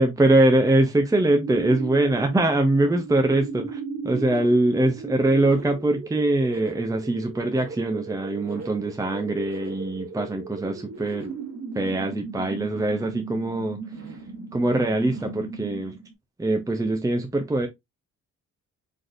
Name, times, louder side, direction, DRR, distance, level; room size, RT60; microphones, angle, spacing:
voice 1, 0.0-11.3 11.7-13.8 14.1-14.2 14.5-16.0 16.4-17.7, right 2 dB, 10° right, 0.7 m, -23 dB
sound 1, 1.2-16.1, right 5 dB, 55° right, 1.7 m, -37 dB
4.1 x 3.2 x 2.6 m
cardioid pair, 90°, 30 cm